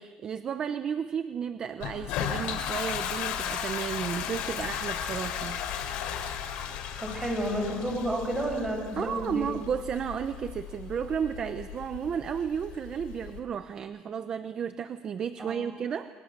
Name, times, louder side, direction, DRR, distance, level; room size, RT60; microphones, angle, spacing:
voice 1, 0.0-5.6 9.0-16.1, right 7 dB, 35° right, 10 dB, 0.8 m, -33 dB
Toilet flush, 1.8-13.4, left 8 dB, 90° left, 3.8 m, -35 dB
voice 2, 7.0-9.5 15.4-15.7, equal, 10° right, 0 dB, 8.0 m, -31 dB
28.5 x 23.5 x 6.8 m, 1.5 s
cardioid pair, 150°, 2 cm